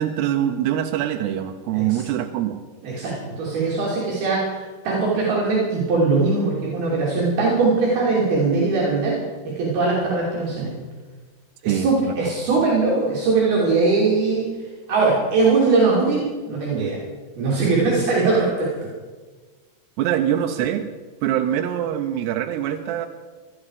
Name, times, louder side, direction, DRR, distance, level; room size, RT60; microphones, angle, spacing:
voice 1, 0.0-2.6 11.7-11.9 20.0-20.9 21.2-23.1, right 11 dB, 80° right, 5 dB, 2.8 m, -23 dB
voice 2, 2.8-9.1 9.4-10.7 11.6-14.5 14.9-17.0 17.4-18.7, right 3 dB, 65° right, -6 dB, 4.8 m, -21 dB
18.5 x 13.5 x 4.9 m, 1.4 s
omnidirectional pair, 4.8 m